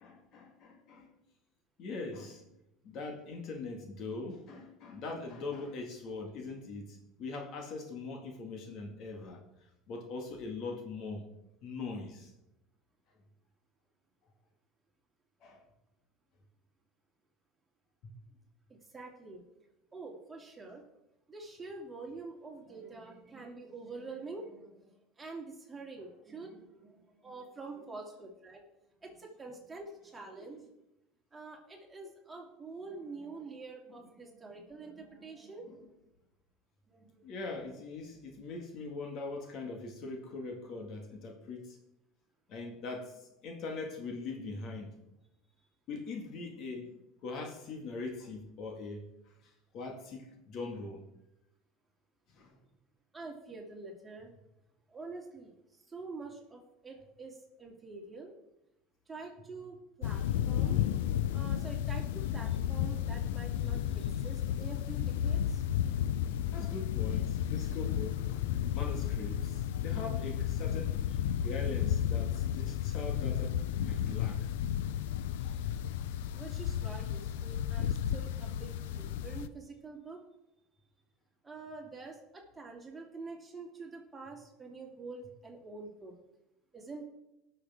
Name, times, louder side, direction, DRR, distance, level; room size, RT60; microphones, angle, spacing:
voice 1, 0.0-1.1 1.8-2.4 2.8-9.4 9.9-11.3 11.6-12.3 15.4-15.6 37.2-41.8 42.5-43.2 43.4-44.9 45.9-49.1 49.7-51.0 52.4-52.5 66.5-68.4 68.7-71.0 71.4-74.6, left 3 dB, 55° left, 2 dB, 2.0 m, -41 dB
voice 2, 18.7-19.4 19.9-20.8 21.3-28.6 29.0-30.7 31.3-35.9 36.9-37.3 53.1-54.3 54.9-58.3 59.1-61.1 61.3-65.6 75.4-75.6 76.3-80.2 81.4-86.1 86.7-87.1, right 3 dB, 15° right, -1 dB, 2.7 m, -46 dB
sound 1, 60.0-79.5, left 10 dB, 90° left, 0.4 m, -33 dB
19.0 x 6.7 x 3.6 m, 0.91 s
supercardioid pair, 115°, 0 cm